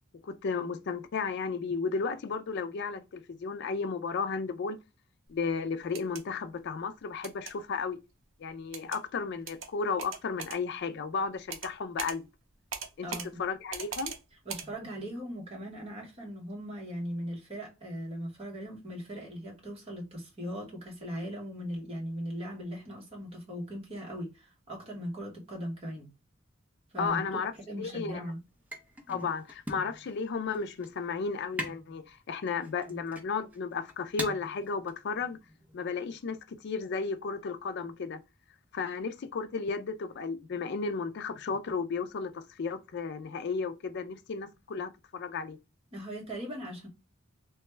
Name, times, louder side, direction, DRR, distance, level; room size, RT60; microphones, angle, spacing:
voice 1, 0.2-4.8 5.3-8.0 8.4-12.3 13.0-13.1 13.4-14.1 27.0-27.5 27.8-28.2 29.1-35.4 35.7-38.2 38.7-45.6, left 5 dB, 55° left, 0.4 m, -34 dB
sound 1, 5.8-6.2 7.2-7.5 8.7-9.0 9.5-9.7 10.0-10.6 11.5-11.7 12.0-12.2 12.7-13.3 13.7-14.2 14.5-14.7, right 6 dB, 70° right, 0.6 m, -39 dB
voice 2, 13.0-13.4 14.4-26.1 26.9-27.4 27.7-28.4 29.1-29.3 32.9-33.0 45.9-46.9, equal, 30° right, 1.3 m, -39 dB
sound 2, 27.1-35.9, right 1 dB, 10° right, 0.7 m, -44 dB
2.9 x 2.3 x 3.1 m
head